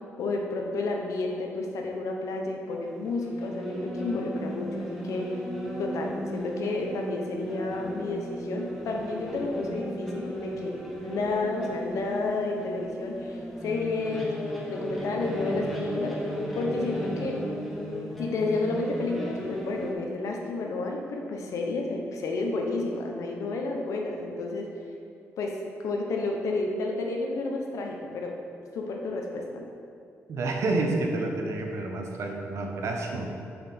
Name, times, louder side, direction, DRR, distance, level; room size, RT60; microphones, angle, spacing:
voice 1, 0.2-5.3 5.8-14.3 14.6-16.2 16.5-17.4 18.2-24.7 25.4-28.4 28.7-29.6, left 3 dB, 80° left, 1 dB, 0.8 m, -31 dB
sound 1, 2.8-19.9, equal, ahead, 0.8 m, -35 dB
voice 2, 30.3-33.3, right 2 dB, 60° right, 2 dB, 0.8 m, -29 dB
6.6 x 4.3 x 4.2 m, 2.5 s
cardioid pair, 135°, 5 cm